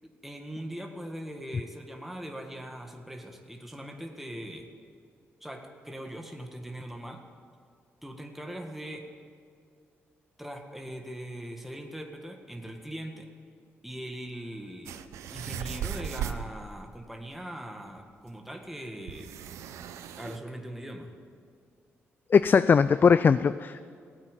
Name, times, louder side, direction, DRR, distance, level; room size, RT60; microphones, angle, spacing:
voice 1, 0.0-4.7 5.4-7.2 8.0-9.1 10.4-13.3 13.8-15.0 15.3-19.3 19.6-19.9 20.2-21.1, right 1 dB, 5° right, 3 dB, 1.8 m, -40 dB
sound 1, 14.9-16.5 18.0-18.1 18.3-18.4 19.1-20.4, right 9 dB, 85° right, 0.7 m, -37 dB
voice 2, 22.3-23.9, left 6 dB, 40° left, 14 dB, 0.4 m, -20 dB
16.0 x 8.7 x 9.1 m, 2.2 s
cardioid pair, 70°, 5 cm